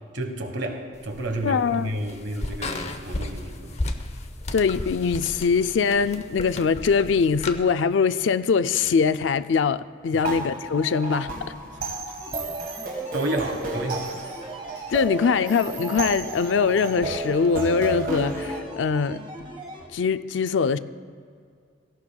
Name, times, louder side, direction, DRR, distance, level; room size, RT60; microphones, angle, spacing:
voice 1, 0.1-3.7 10.3-10.4 12.3-12.4 13.1-14.2, right 1 dB, 65° right, 5 dB, 1.3 m, -31 dB
sound 1, 0.9-7.6, left 2 dB, 35° left, 0.7 m, -34 dB
voice 2, 1.4-1.9 4.5-11.3 14.9-19.2 19.9-20.8, left 5 dB, 75° left, 13 dB, 0.4 m, -22 dB
sound 2, 10.2-18.6, right 2 dB, 50° right, 2.2 m, -32 dB
sound 3, 12.2-19.9, right 2 dB, 30° right, 1.5 m, -40 dB
17.5 x 16.0 x 2.3 m, 2.2 s
head